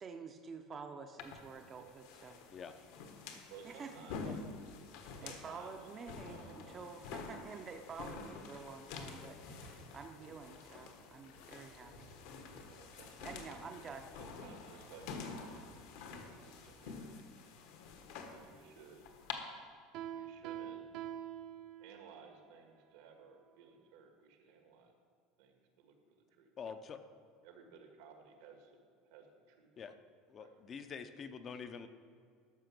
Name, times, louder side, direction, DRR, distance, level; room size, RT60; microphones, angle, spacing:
voice 1, 0.0-2.4 3.3-3.9 4.2-4.3 5.2-12.1 13.2-14.1, right 5 dB, 25° right, 5 dB, 0.6 m, -49 dB
sound 1, 1.2-19.3, left 5 dB, 70° left, 1.3 m, -49 dB
voice 2, 3.5-4.4 5.2-5.9 6.2-6.8 12.7-13.4 14.1-15.6 16.0-17.1 18.3-19.1 20.1-20.8 21.8-24.9 25.4-26.5 27.4-29.7 30.4-30.6, right 6 dB, 80° right, 4 dB, 1.7 m, -57 dB
sound 2, 9.2-16.8, left 2 dB, 85° left, 1.9 m, -60 dB
Piano, 19.9-22.2, right 10 dB, 55° right, 0.8 m, -45 dB
voice 3, 26.6-27.0 29.8-29.9 30.3-31.9, left 6 dB, 30° left, 9 dB, 0.5 m, -46 dB
13.0 x 5.7 x 6.0 m, 2.3 s
cardioid pair, 150°, 0 cm